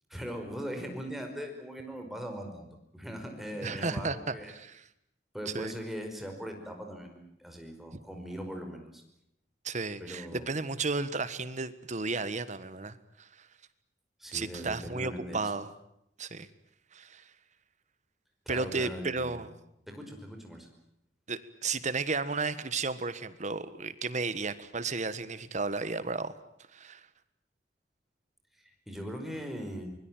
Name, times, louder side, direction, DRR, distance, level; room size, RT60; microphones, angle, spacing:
voice 1, 0.1-4.5 5.3-9.0 10.0-10.6 14.2-15.4 18.5-19.4 19.9-20.7 28.6-30.0, equal, ahead, 3 dB, 5.2 m, -40 dB
voice 2, 3.6-4.8 5.4-5.7 9.6-13.5 14.3-15.7 16.2-16.5 16.9-17.3 18.5-19.5 21.3-26.3 26.7-27.1, right 3 dB, 45° right, 14 dB, 1.4 m, -33 dB
25.0 x 22.0 x 9.1 m, 0.76 s
head